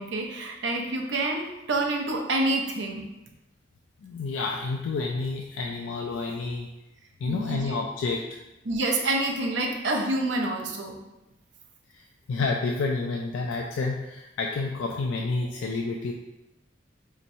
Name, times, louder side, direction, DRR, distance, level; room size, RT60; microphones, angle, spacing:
voice 1, 0.0-3.1 7.3-7.7 8.6-11.0, right 2 dB, 75° right, 1 dB, 0.6 m, -27 dB
voice 2, 4.0-6.7 7.2-8.2 11.9-16.1, left 3 dB, 85° left, 1 dB, 0.3 m, -29 dB
4.1 x 2.9 x 2.6 m, 0.96 s
head